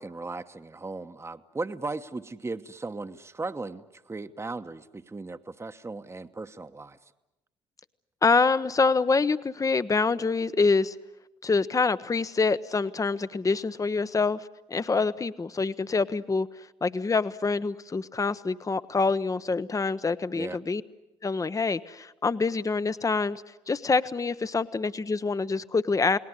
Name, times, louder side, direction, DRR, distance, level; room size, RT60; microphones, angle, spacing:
voice 1, 0.0-7.0 20.3-20.6, right 3 dB, 20° right, 9 dB, 1.1 m, -37 dB
voice 2, 8.2-10.9 11.4-16.5 16.8-20.8 21.2-26.2, left 4 dB, 25° left, 14 dB, 0.9 m, -26 dB
30.0 x 19.0 x 9.8 m, 0.98 s
hypercardioid pair, 60°, 14 cm